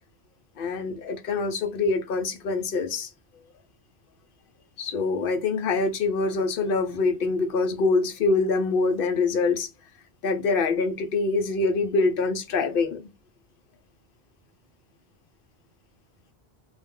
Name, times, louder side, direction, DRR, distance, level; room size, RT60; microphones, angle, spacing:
voice 1, 0.6-3.1 4.8-9.7 10.2-13.1, left 3 dB, 65° left, 0.7 m, -25 dB
2.3 x 2.1 x 3.5 m
omnidirectional pair, 1.1 m